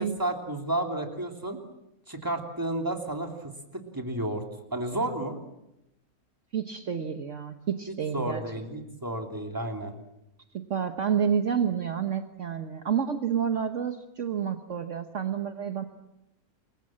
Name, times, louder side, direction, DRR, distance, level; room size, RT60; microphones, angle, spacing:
voice 1, 0.0-1.6 2.1-4.4 4.7-5.4 7.9-9.9, right 1 dB, 15° right, 3 dB, 3.1 m, -32 dB
voice 2, 6.5-8.4 10.5-15.8, right 7 dB, 55° right, 6 dB, 1.5 m, -29 dB
28.0 x 22.5 x 7.5 m, 0.87 s
omnidirectional pair, 1.6 m